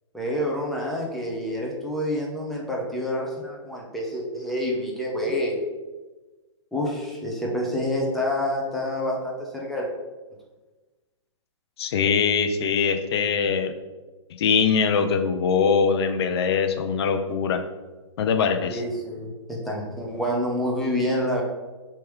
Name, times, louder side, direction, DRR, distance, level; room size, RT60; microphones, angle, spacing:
voice 1, 0.1-5.6 6.7-9.9 18.7-21.4, left 1 dB, ahead, -3 dB, 0.8 m, -28 dB
voice 2, 11.8-13.7 14.4-17.6 18.2-18.8, left 6 dB, 55° left, 8 dB, 0.5 m, -22 dB
3.5 x 3.0 x 4.6 m, 1.2 s
hypercardioid pair, 125°, 16 cm